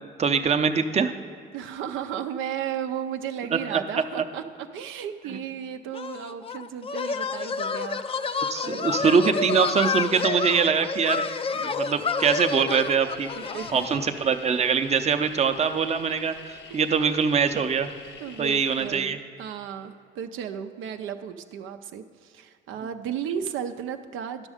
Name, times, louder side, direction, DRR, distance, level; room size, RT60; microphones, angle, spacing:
voice 1, 0.2-1.1 3.7-3.8 4.2-4.3 8.4-11.2 11.5-13.3 13.7-17.9 18.4-19.2, right 6 dB, 35° right, 7 dB, 0.6 m, -23 dB
voice 2, 1.5-9.0 13.3-13.9 16.7-16.8 18.2-24.5, right 8 dB, 85° right, 7 dB, 0.5 m, -34 dB
sound 1, 5.9-14.0, left 5 dB, 30° left, 0.4 m, -29 dB
sound 2, 12.8-18.9, left 4 dB, 75° left, 1.2 m, -46 dB
10.5 x 6.2 x 4.9 m, 2.3 s
cardioid pair, 90°, 20 cm